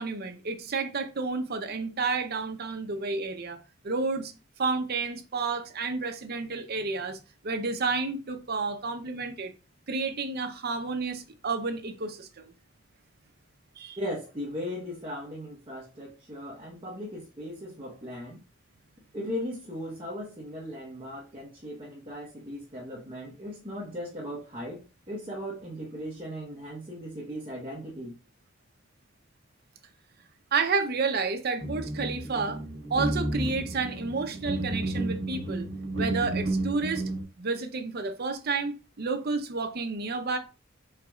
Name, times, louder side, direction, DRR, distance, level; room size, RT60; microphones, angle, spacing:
voice 1, 0.0-3.6 3.8-4.3 4.6-7.2 7.4-9.5 9.9-12.5 13.8-14.0 30.5-32.6 32.9-35.7 36.0-37.0 37.4-40.4, right 4 dB, 50° right, 0.6 m, -30 dB
voice 2, 14.0-18.4 19.1-28.1, equal, 25° right, 1.0 m, -38 dB
sound 1, 31.6-37.2, right 1 dB, 70° right, 1.5 m, -32 dB
4.6 x 4.1 x 2.3 m
head